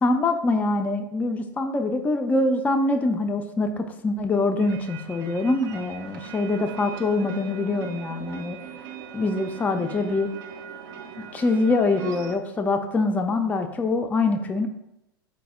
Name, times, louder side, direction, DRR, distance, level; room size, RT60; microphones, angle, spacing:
voice 1, 0.0-8.6 9.1-10.3 11.2-14.7, left 2 dB, 15° left, 5 dB, 0.3 m, -24 dB
sound 1, 4.6-12.4, right 7 dB, 65° right, 0.5 m, -40 dB
4.0 x 2.0 x 3.5 m, 0.87 s
hypercardioid pair, 95°, 12 cm